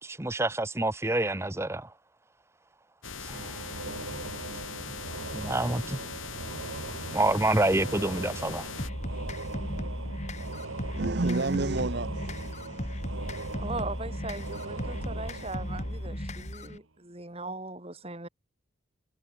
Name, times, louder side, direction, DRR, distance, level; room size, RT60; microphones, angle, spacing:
voice 1, 0.0-1.9 3.2-3.7 5.3-6.0 7.1-8.6, right 2 dB, 15° right, 0.8 m, -27 dB
sound 1, 3.0-8.9, left 5 dB, 75° left, 4.3 m, -40 dB
sound 2, 3.3-16.8, right 2 dB, 80° right, 2.0 m, -40 dB
sound 3, 8.8-16.8, equal, 35° left, 4.4 m, -36 dB
voice 2, 11.0-13.5, right 2 dB, 55° right, 0.9 m, -31 dB
voice 3, 13.6-18.3, right 2 dB, 30° right, 2.4 m, -39 dB
head